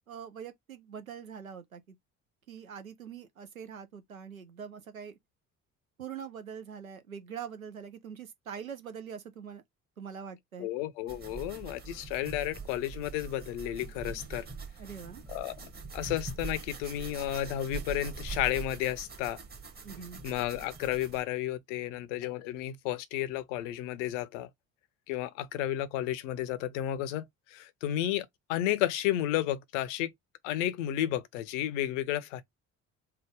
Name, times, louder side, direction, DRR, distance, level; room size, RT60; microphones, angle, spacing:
voice 1, 0.1-2.0 2.5-5.2 6.0-9.6 10.0-10.7 14.8-15.2 19.8-20.2, right 7 dB, 90° right, 0.5 m, -43 dB
voice 2, 10.6-14.5 15.3-19.4 20.2-24.5 25.1-30.1 30.4-32.4, left 13 dB, 60° left, 0.6 m, -32 dB
sound 1, 11.1-21.2, right 5 dB, 25° right, 1.2 m, -43 dB
3.4 x 2.2 x 3.4 m
figure-of-eight pair, 50°, 40 cm